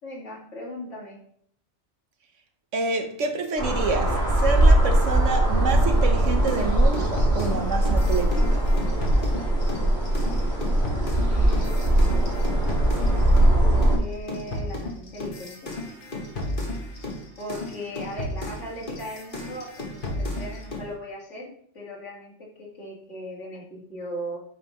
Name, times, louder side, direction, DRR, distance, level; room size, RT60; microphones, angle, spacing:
voice 1, 0.0-1.2 11.3-12.3 13.7-15.7 17.4-21.5 21.7-24.4, equal, 75° left, 2.3 m, -38 dB
voice 2, 2.7-8.8, right 4 dB, 80° right, 1.3 m, -28 dB
sound 1, 3.6-14.0, right 1 dB, 55° right, 2.2 m, -21 dB
sound 2, 6.5-13.5 13.8-20.9, left 1 dB, 45° left, 1.4 m, -33 dB
8.5 x 5.5 x 3.1 m
omnidirectional pair, 1.3 m